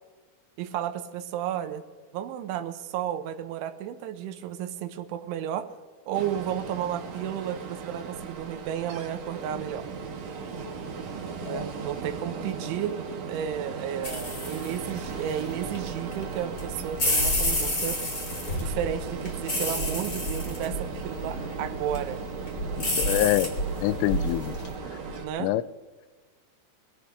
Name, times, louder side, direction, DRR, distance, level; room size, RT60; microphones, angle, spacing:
voice 1, 0.6-1.8 2.1-5.7 6.1-9.9 11.5-13.0 13.3-18.0 18.6-22.2 25.2-25.5, right 10 dB, 80° right, 9 dB, 3.2 m, -33 dB
Ocean, 6.1-25.3, right 5 dB, 50° right, 2.9 m, -37 dB
sound 1, 14.0-24.7, left 1 dB, 25° left, 2.3 m, -31 dB
voice 2, 23.0-23.5 23.8-24.5 25.4-25.6, left 15 dB, 85° left, 17 dB, 3.1 m, -25 dB
24.0 x 17.0 x 3.4 m, 1.4 s
omnidirectional pair, 5.6 m